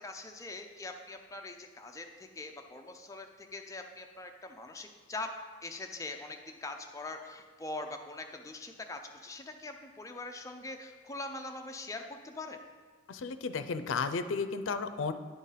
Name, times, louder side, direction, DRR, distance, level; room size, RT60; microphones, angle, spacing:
voice 1, 0.0-5.3 5.6-12.6, left 2 dB, 15° left, 4 dB, 0.5 m, -43 dB
voice 2, 13.1-15.1, left 4 dB, 85° left, 10 dB, 0.5 m, -33 dB
9.8 x 3.9 x 5.6 m, 1.5 s
head